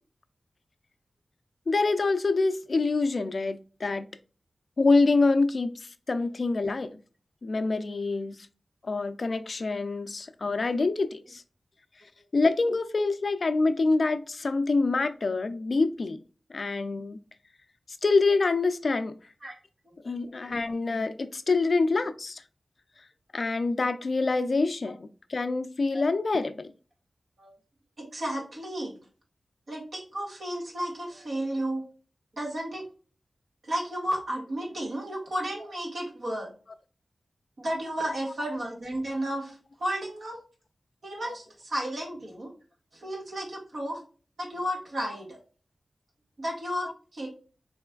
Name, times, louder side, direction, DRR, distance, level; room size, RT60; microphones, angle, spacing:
voice 1, 1.7-4.1 4.8-5.7 6.1-6.9 7.4-8.5 8.9-11.4 12.3-16.2 16.5-17.2 18.0-19.1 20.0-22.4 23.3-26.5 38.0-38.1, left 3 dB, 60° left, 0.4 m, -26 dB
voice 2, 28.0-29.0 29.7-31.8 32.4-32.8 33.6-36.5 37.6-40.4 41.0-42.5 42.9-44.0 44.4-45.4 46.4-47.3, right 1 dB, 70° right, 1.7 m, -33 dB
4.1 x 3.2 x 2.3 m
wide cardioid pair, 60°, 0 cm